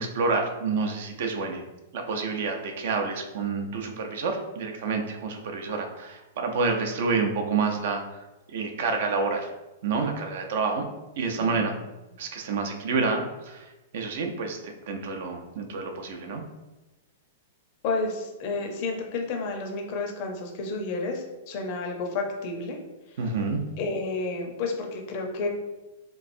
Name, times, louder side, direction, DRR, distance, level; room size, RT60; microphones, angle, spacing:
voice 1, 0.0-1.6 1.9-8.0 8.5-9.5 9.8-10.8 11.2-11.8 12.2-16.4 23.2-23.6, right 4 dB, 60° right, 3 dB, 0.5 m, -28 dB
voice 2, 17.8-22.8 23.8-25.5, left 3 dB, 40° left, 2 dB, 0.5 m, -31 dB
3.4 x 3.0 x 2.5 m, 1.1 s
supercardioid pair, 160°, 0 cm